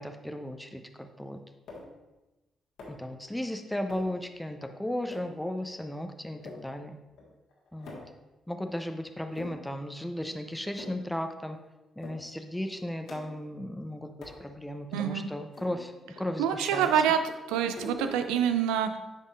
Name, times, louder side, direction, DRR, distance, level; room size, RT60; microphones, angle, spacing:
voice 1, 0.0-1.4 2.9-7.0 7.7-8.0 8.5-11.6 12.0-16.9, left 1 dB, 5° left, 6 dB, 0.6 m, -35 dB
sound 1, 1.7-2.0 2.8-3.1 3.9-4.2 4.6-4.7 5.1-5.3 5.8-5.9 6.3-6.6 7.2-7.3 7.5-8.2 8.7-8.8 9.2-9.8 10.2-10.3 10.6-11.1 11.4-11.5 12.0-12.2 12.5-13.5 14.2-14.4 14.9-15.0 15.5-17.2 17.5-18.4, left 2 dB, 70° left, 1.6 m, -45 dB
voice 2, 14.9-15.3 16.4-17.2 17.5-19.0, right 9 dB, 75° right, 9 dB, 0.4 m, -26 dB
9.8 x 5.3 x 2.6 m, 1.0 s
hypercardioid pair, 40°, 0 cm